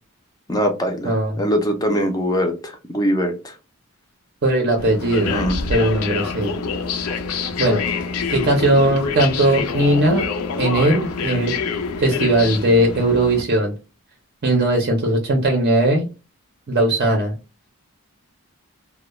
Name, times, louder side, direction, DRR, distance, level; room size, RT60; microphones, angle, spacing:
voice 1, 0.5-3.5 5.3-5.6, equal, 15° left, 5 dB, 0.4 m, -22 dB
voice 2, 1.0-1.4 4.4-5.3 5.7-6.5 7.6-7.8 8.3-10.3 10.6-11.5 12.0-13.7 14.4-16.1 16.7-17.3, right 1 dB, 45° right, 1 dB, 0.5 m, -18 dB
sound 1, 4.8-13.4, left 5 dB, 75° left, 0.4 m, -26 dB
2.2 x 2.0 x 2.9 m, 0.31 s
head